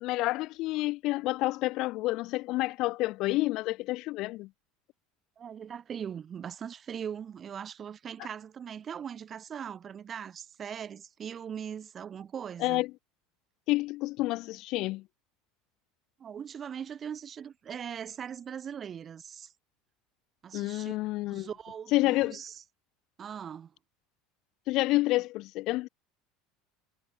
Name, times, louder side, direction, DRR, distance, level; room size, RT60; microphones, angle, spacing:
voice 1, 0.0-4.5 12.6-12.9 13.7-15.0 20.5-21.5 21.9-22.4 24.7-25.9, left 19 dB, 45° left, 0.4 m, -29 dB
voice 2, 5.4-12.8 16.2-19.5 20.4-21.0 21.3-22.6 23.2-23.7, right 8 dB, 25° right, 4.7 m, -40 dB
cardioid pair, 160°, 0 cm